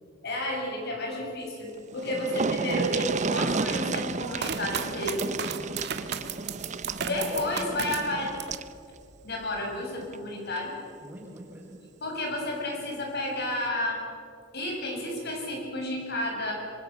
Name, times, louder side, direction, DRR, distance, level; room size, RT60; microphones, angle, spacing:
voice 1, 0.2-5.2 7.1-8.3 9.2-10.7 12.0-14.0 14.5-16.5, left 1 dB, 60° left, 0 dB, 7.0 m, -31 dB
sound 1, 1.6-1.7 1.9-8.7 10.0-10.2 10.6-10.7, right 4 dB, 40° right, 0.7 m, -32 dB
sound 2, 4.4-8.7 9.1-9.8, right 7 dB, 60° right, 1.5 m, -35 dB
voice 2, 5.4-5.9 7.0-8.0 11.0-11.8, right 1 dB, 10° right, -2 dB, 5.5 m, -43 dB
27.0 x 23.5 x 7.0 m, 2.4 s
head